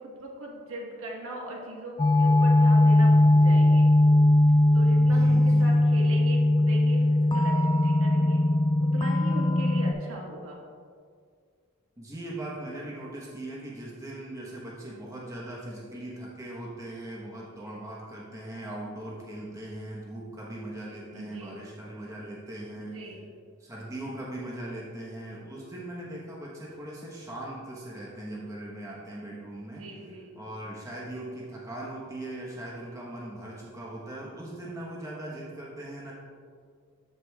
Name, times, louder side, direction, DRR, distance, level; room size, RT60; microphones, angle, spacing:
voice 1, 0.0-3.9 4.7-8.4 8.8-10.6 21.1-21.6 22.8-23.3 29.8-30.3, right 1 dB, 80° right, -1 dB, 1.3 m, -39 dB
sound 1, 2.0-9.9, left 1 dB, 20° left, 0.3 m, -20 dB
voice 2, 4.9-5.8 12.0-23.0 23.6-29.9 30.4-36.1, right 1 dB, 15° right, -5 dB, 1.0 m, -39 dB
13.5 x 5.0 x 2.3 m, 2.1 s
head